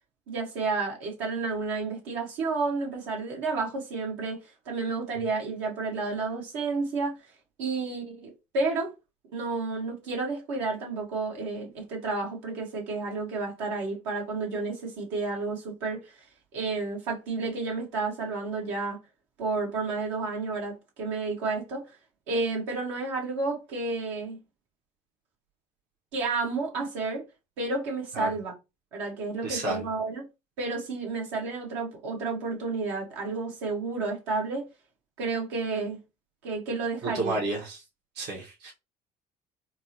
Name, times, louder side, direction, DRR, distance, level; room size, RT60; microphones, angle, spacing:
voice 1, 0.3-4.4 4.6-7.2 7.6-8.9 9.3-16.2 16.5-19.0 19.4-21.9 22.3-24.4 26.1-27.2 27.6-28.5 28.9-30.3 30.6-34.7 35.2-36.0 36.4-37.4 38.3-38.4, right 3 dB, 75° right, 1.4 m, -31 dB
voice 2, 29.4-29.8 37.0-37.8 38.2-38.7, right 2 dB, 60° right, 1.2 m, -31 dB
4.4 x 2.0 x 2.9 m
hypercardioid pair, 60°, 20 cm